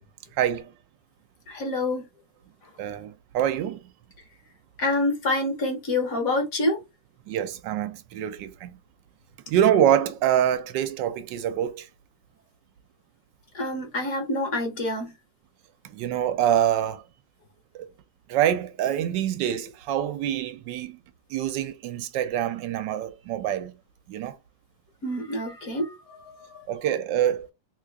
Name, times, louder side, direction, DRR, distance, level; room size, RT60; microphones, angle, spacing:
voice 1, 0.3-0.7 2.8-3.8 7.3-8.8 9.5-11.9 15.9-17.0 17.7-17.8 18.3-21.0 21.3-23.7 24.1-24.4 26.7-27.5, right 10 dB, 75° right, 1.2 m, -25 dB
voice 2, 1.5-2.0 4.8-6.8 13.5-15.1 25.0-26.6, left 2 dB, 55° left, 1.2 m, -27 dB
3.2 x 2.4 x 3.4 m
omnidirectional pair, 2.0 m